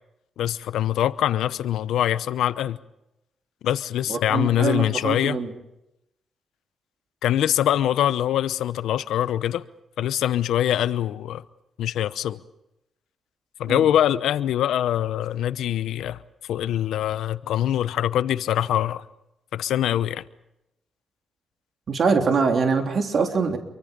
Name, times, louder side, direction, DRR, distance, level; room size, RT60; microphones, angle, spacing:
voice 1, 0.4-2.8 3.6-5.4 7.2-9.6 10.0-11.4 11.8-12.4 13.6-16.2 16.5-19.0 19.5-20.2, left 11 dB, 90° left, 0.9 m, -23 dB
voice 2, 4.1-5.5 13.7-13.9 21.9-23.6, right 5 dB, 55° right, 3.5 m, -23 dB
27.0 x 24.0 x 5.4 m
cardioid pair, 85°, 0 cm